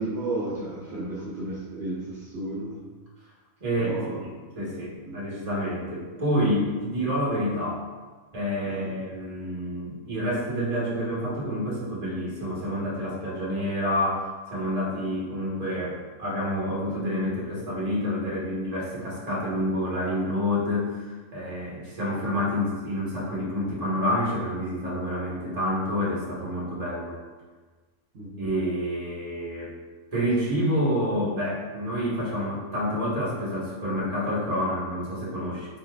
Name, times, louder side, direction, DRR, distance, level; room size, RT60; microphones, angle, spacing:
voice 1, 0.0-2.8 3.8-4.2 5.1-5.2 8.7-8.9 28.1-28.5, right 2 dB, 55° right, -7 dB, 0.9 m, -33 dB
voice 2, 3.6-7.8 8.3-27.2 28.4-29.7 30.1-35.8, equal, 30° right, -6 dB, 1.2 m, -28 dB
4.2 x 4.1 x 2.3 m, 1.4 s
omnidirectional pair, 1.4 m